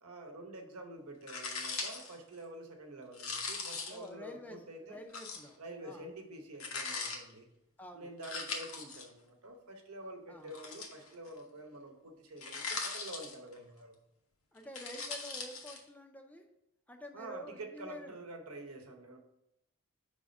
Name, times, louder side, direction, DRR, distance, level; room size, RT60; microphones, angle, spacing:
voice 1, 0.0-5.0 5.6-7.5 7.9-14.0 17.1-19.2, right 1 dB, 80° right, 4 dB, 0.9 m, -48 dB
sound 1, 1.3-2.1 3.1-4.1 5.1-5.5 6.6-7.2 8.2-9.0 10.5-11.3 12.4-13.6 14.6-15.8, left 4 dB, 65° left, 0.9 m, -40 dB
voice 2, 3.9-6.1 7.8-8.1 10.0-10.6 14.5-16.5 16.9-18.2, equal, 5° left, 4 dB, 0.5 m, -49 dB
5.1 x 3.6 x 5.2 m, 0.84 s
head